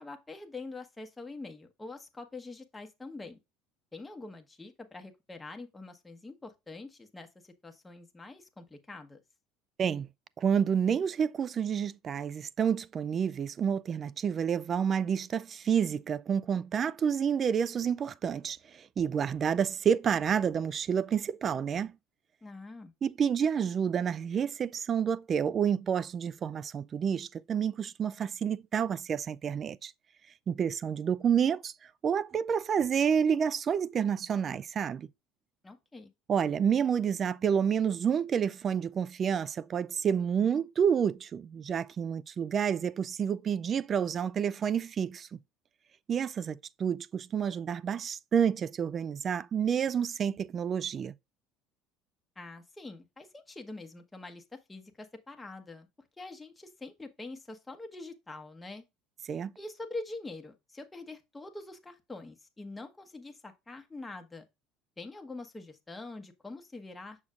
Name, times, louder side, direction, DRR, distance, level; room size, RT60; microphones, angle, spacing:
voice 1, 0.0-3.4 3.9-9.2 22.4-22.9 35.6-36.1 52.4-55.9 56.2-58.8 59.6-64.4 65.0-67.2, left 2 dB, 10° left, 1.2 m, -45 dB
voice 2, 10.4-21.9 23.0-29.9 30.5-31.7 32.0-35.1 36.3-45.4 46.1-51.1 59.3-59.5, right 7 dB, 35° right, 0.3 m, -29 dB
7.1 x 6.4 x 2.4 m
supercardioid pair, 105°, 0 cm